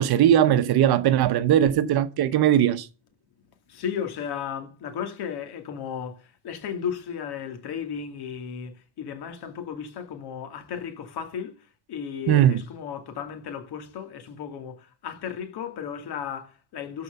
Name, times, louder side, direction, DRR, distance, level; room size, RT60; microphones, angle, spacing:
voice 1, 0.0-2.9 12.3-12.6, right 11 dB, 55° right, 0.9 m, -19 dB
voice 2, 3.7-11.5 11.9-17.0, left 8 dB, 60° left, 2.5 m, -34 dB
13.0 x 4.8 x 6.7 m
cardioid pair, 170°, 45 cm